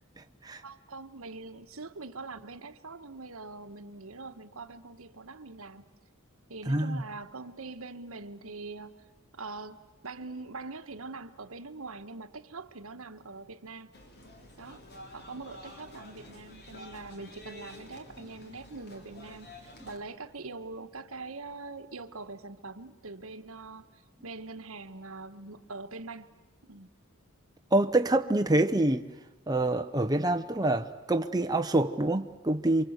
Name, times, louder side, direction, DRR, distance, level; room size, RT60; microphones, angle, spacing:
voice 1, 0.6-5.9 6.5-9.0 9.3-13.9 14.6-14.8 15.1-26.9, right 3 dB, 70° right, 1.3 m, -43 dB
voice 2, 6.7-7.0 27.7-29.0 29.5-32.9, right 2 dB, 20° right, 0.8 m, -26 dB
sound 1, 13.9-20.0, left 1 dB, 50° left, 3.4 m, -49 dB
28.5 x 25.0 x 8.1 m
head